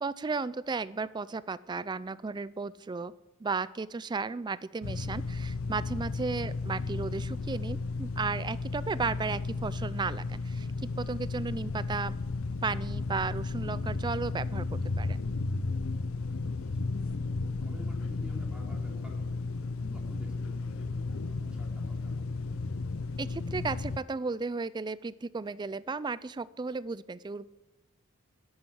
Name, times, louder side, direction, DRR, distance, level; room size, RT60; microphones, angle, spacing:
voice 1, 0.0-3.1 3.4-12.2 12.6-15.2 23.2-27.5, right 4 dB, 20° right, 18 dB, 0.3 m, -34 dB
sound 1, 4.8-24.0, left 3 dB, 70° left, 0.6 m, -34 dB
voice 2, 16.4-22.3, left 1 dB, 5° right, -1 dB, 2.9 m, -51 dB
10.5 x 8.9 x 8.6 m, 1.0 s
head